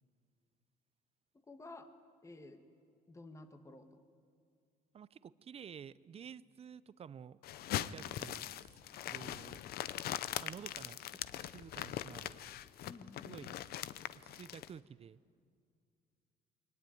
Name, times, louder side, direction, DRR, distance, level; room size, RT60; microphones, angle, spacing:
voice 1, 1.5-1.9 2.2-2.6 3.1-4.0 12.8-13.5, left 2 dB, 15° left, 7 dB, 1.6 m, -52 dB
voice 2, 4.9-7.4 7.7-8.7 9.1-9.6 10.4-12.5 13.2-13.5 14.1-15.2, right 8 dB, 35° right, 18 dB, 0.6 m, -51 dB
sound 1, 7.4-14.7, left 12 dB, 65° left, 0.7 m, -41 dB
23.0 x 19.0 x 9.3 m, 2.3 s
cardioid pair, 110°, 17 cm